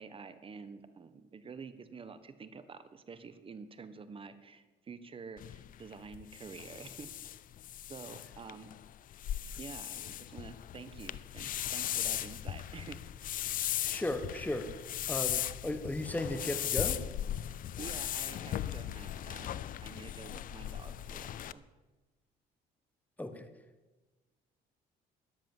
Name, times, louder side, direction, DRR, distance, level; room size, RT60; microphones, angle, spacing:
voice 1, 0.0-7.1 7.9-8.7 9.6-13.0 17.8-21.7, right 5 dB, 30° right, 12 dB, 1.3 m, -48 dB
sound 1, 5.4-21.5, left 11 dB, 55° left, 0.6 m, -38 dB
voice 2, 13.8-14.7 15.1-17.0 23.2-23.5, left 1 dB, 10° left, 9 dB, 1.5 m, -35 dB
13.5 x 10.5 x 7.4 m, 1.2 s
cardioid pair, 110°, 17 cm